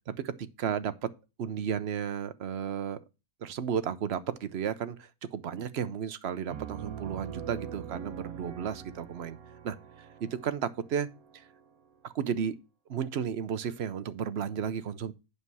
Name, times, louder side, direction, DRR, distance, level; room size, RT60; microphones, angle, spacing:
voice 1, 0.1-0.9 1.4-3.0 3.4-9.4 9.6-9.8 10.2-11.1 11.3-11.5 12.0-12.6 12.9-15.1, right 8 dB, 55° right, 0.8 m, -33 dB
Piano, 6.5-12.0, right 8 dB, 75° right, 1.4 m, -43 dB
8.3 x 5.6 x 4.7 m
omnidirectional pair, 1.6 m